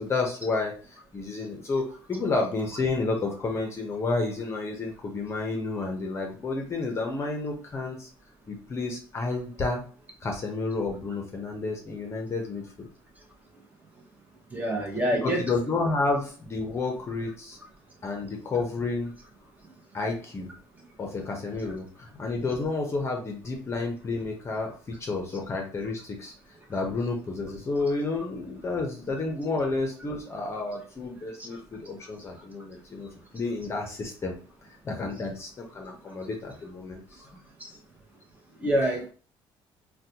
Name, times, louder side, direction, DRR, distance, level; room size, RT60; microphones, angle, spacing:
voice 1, 0.0-8.1 8.5-9.8 10.2-12.9 15.1-17.6 18.0-19.1 19.9-20.5 21.0-26.3 26.7-33.1 33.3-34.3 34.8-37.0, left 3 dB, 30° left, 2 dB, 0.7 m, -30 dB
voice 2, 14.5-15.4 31.5-31.6 37.6-37.7 38.6-39.1, right 1 dB, 15° right, 0 dB, 0.9 m, -26 dB
3.9 x 2.2 x 2.8 m, 0.40 s
cardioid pair, 135°, 9 cm